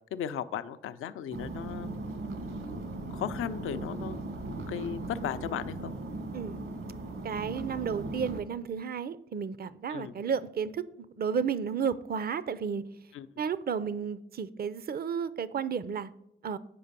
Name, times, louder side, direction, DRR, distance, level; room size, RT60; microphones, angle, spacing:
voice 1, 0.1-2.0 2.7-2.9 3.1-4.2 4.5-5.9 9.9-10.1 13.1-13.3, left 9 dB, 85° left, 12 dB, 0.4 m, -36 dB
sound 1, 1.3-8.4, right 2 dB, 70° right, 1.5 m, -38 dB
voice 2, 7.2-12.8 13.4-16.1 16.4-16.6, right 6 dB, 45° right, 16 dB, 0.5 m, -32 dB
7.6 x 5.1 x 6.6 m, 0.82 s
supercardioid pair, 45°, 21 cm